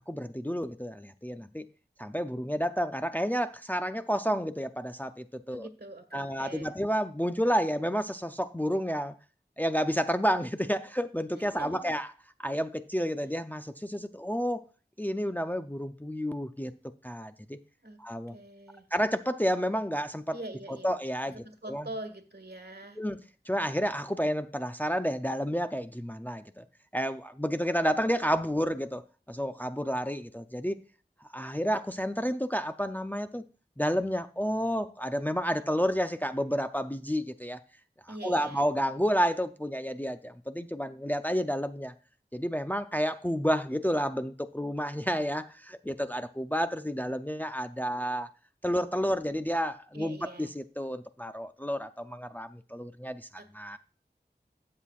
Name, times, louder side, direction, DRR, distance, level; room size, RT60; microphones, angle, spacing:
voice 1, 0.1-1.7 2.0-5.7 6.1-9.1 9.6-12.1 12.4-14.6 15.0-16.7 17.0-17.6 18.0-18.4 18.9-20.4 20.8-21.3 21.7-21.9 23.0-23.2 23.5-26.6 26.9-29.0 29.3-30.8 31.3-33.4 33.8-37.6 38.2-41.9 42.3-48.3 48.6-53.3 53.5-53.8, equal, 10° left, 0.5 m, -30 dB
voice 2, 5.5-6.7 11.3-11.9 17.8-18.0 18.3-18.9 20.3-20.9 21.3-23.0 38.1-38.7 49.9-50.6 53.4-53.8, right 1 dB, 65° right, 1.6 m, -44 dB
12.5 x 7.6 x 2.4 m
wide cardioid pair, 40°, 18 cm